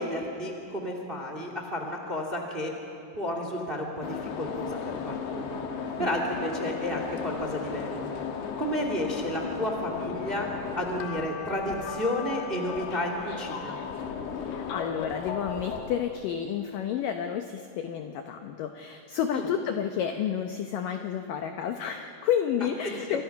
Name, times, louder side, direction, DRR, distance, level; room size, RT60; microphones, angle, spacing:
voice 1, 0.0-2.7 3.1-5.6 6.0-8.1 8.6-10.5 10.7-13.7 19.3-19.5 22.8-23.2, left 1 dB, 20° right, 3 dB, 1.4 m, -32 dB
sound 1, 4.0-16.0, left 6 dB, 65° left, 3.4 m, -35 dB
voice 2, 14.4-23.2, left 9 dB, 85° left, 6 dB, 1.9 m, -30 dB
29.0 x 26.0 x 5.9 m, 2.5 s
omnidirectional pair, 5.2 m